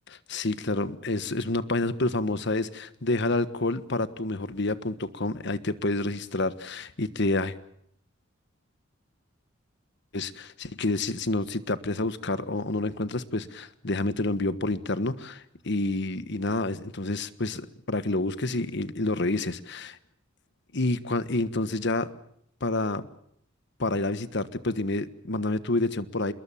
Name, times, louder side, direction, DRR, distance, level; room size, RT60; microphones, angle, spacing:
voice 1, 0.1-7.5 10.1-20.0 20.7-22.1 22.6-23.1 23.8-26.3, left 2 dB, 60° left, 14 dB, 1.4 m, -28 dB
27.5 x 21.5 x 7.4 m, 0.70 s
head